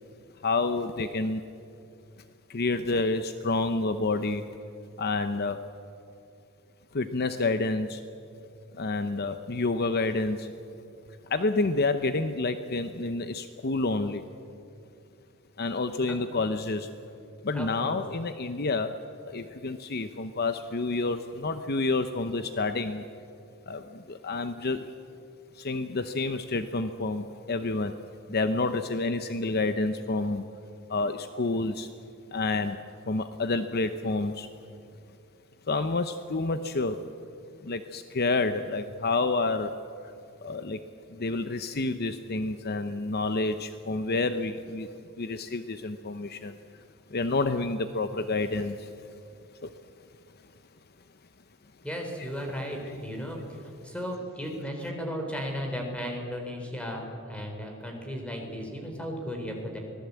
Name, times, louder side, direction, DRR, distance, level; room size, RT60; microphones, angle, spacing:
voice 1, 0.4-1.4 2.5-4.4 5.0-5.6 6.9-8.0 8.7-10.5 11.3-14.2 15.6-16.9 17.4-19.0 19.2-23.1 23.7-24.8 25.5-27.9 28.3-30.4 30.9-31.9 32.3-32.8 33.1-34.5 35.7-37.0 37.6-39.8 40.0-40.1 40.4-40.8 41.1-44.9 45.2-46.8 47.1-48.9 49.6-49.7 52.2-52.3, left 3 dB, 50° left, 9 dB, 0.8 m, -29 dB
voice 2, 17.5-18.0 51.8-59.8, equal, 5° left, 2 dB, 3.9 m, -35 dB
25.0 x 18.0 x 8.4 m, 2.6 s
head